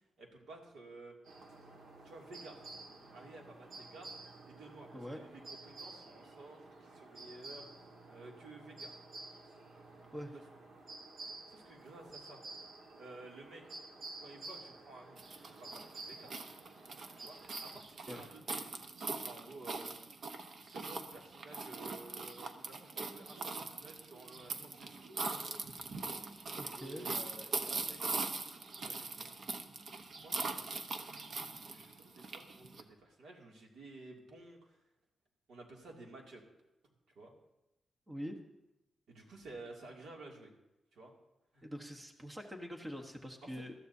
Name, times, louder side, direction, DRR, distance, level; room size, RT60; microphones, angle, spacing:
voice 1, 0.2-1.2 2.0-2.6 3.1-4.1 4.4-9.0 10.3-10.4 11.5-12.4 13.0-13.8 14.2-16.4 17.2-18.7 19.2-19.9 20.6-25.0 25.4-25.5 26.7-28.2 28.8-29.3 30.1-34.8 35.5-36.4 37.2-37.3 39.1-40.5 40.9-41.1 41.5-41.7 43.4-43.6, right 2 dB, 85° right, 0 dB, 2.5 m, -53 dB
sound 1, 1.2-17.8, right 2 dB, 70° right, 1.8 m, -51 dB
sound 2, 15.2-32.8, right 3 dB, 55° right, 1.0 m, -41 dB
voice 2, 26.5-27.1 38.1-38.4 41.6-43.7, equal, 15° right, 3 dB, 1.2 m, -44 dB
20.5 x 13.5 x 2.8 m, 0.93 s
wide cardioid pair, 130°, 0 cm